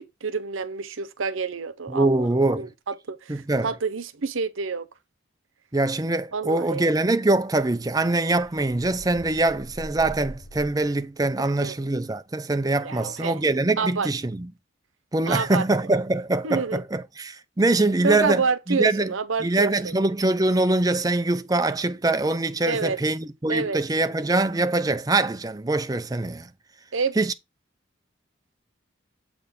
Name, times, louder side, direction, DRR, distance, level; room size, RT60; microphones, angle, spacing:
voice 1, 0.0-4.9 6.3-6.8 11.4-11.8 12.8-13.4 13.8-14.1 15.3-15.7 16.4-16.8 18.0-20.0 22.7-23.0 23.5-23.8 26.9-27.2, right 4 dB, 85° right, 0.8 m, -28 dB
voice 2, 1.9-2.7 3.3-3.7 5.7-14.5 15.1-19.1 19.4-26.5 27.2-27.3, right 2 dB, 20° right, 0.5 m, -23 dB
sound 1, 8.3-11.1, equal, 50° left, 1.0 m, -42 dB
7.8 x 3.7 x 3.8 m
head